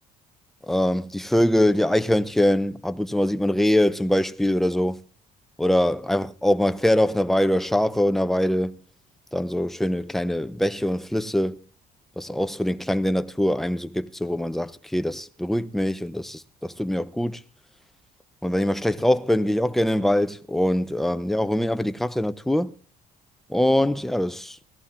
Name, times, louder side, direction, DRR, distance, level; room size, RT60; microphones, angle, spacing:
voice 1, 0.7-5.0 5.6-8.8 9.3-11.6 12.2-17.4 18.4-22.7 23.5-24.6, left 1 dB, ahead, 0.5 m, -23 dB
17.5 x 13.5 x 3.7 m
cardioid pair, 110°, 17 cm